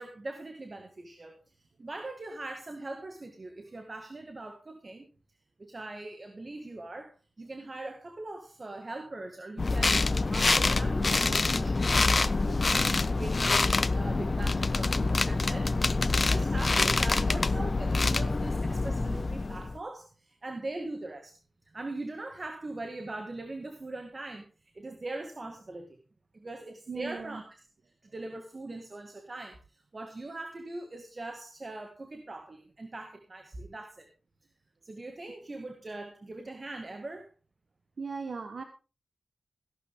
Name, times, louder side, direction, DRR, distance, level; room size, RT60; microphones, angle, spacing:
voice 1, 0.0-1.4 1.8-5.1 5.6-10.0 10.3-21.4 21.6-24.5 24.7-26.0 26.3-27.6 28.0-34.1 34.8-37.3, right 2 dB, 35° right, 5 dB, 1.9 m, -41 dB
sound 1, 9.6-19.8, left 3 dB, 40° left, 0.6 m, -26 dB
voice 2, 26.9-27.4 38.0-38.6, right 5 dB, 65° right, 7 dB, 1.3 m, -38 dB
15.5 x 11.5 x 3.6 m, 0.33 s
wide cardioid pair, 105°, 0 cm